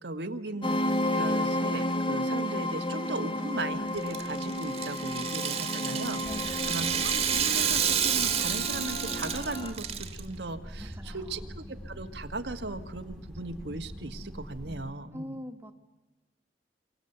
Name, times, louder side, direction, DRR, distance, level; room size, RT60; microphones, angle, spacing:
voice 1, 0.0-15.4, right 2 dB, 85° right, 6 dB, 1.5 m, -38 dB
sound 1, 0.6-9.7, left 1 dB, 30° left, 1.6 m, -32 dB
Rattle (instrument), 4.0-10.2, right 8 dB, 35° right, 1.6 m, -30 dB
sound 2, 6.2-14.9, equal, 5° left, 1.7 m, -43 dB
voice 2, 6.2-6.7 10.8-11.4 15.1-15.7, equal, 15° right, 5 dB, 1.5 m, -43 dB
29.0 x 23.5 x 8.0 m, 1.1 s
head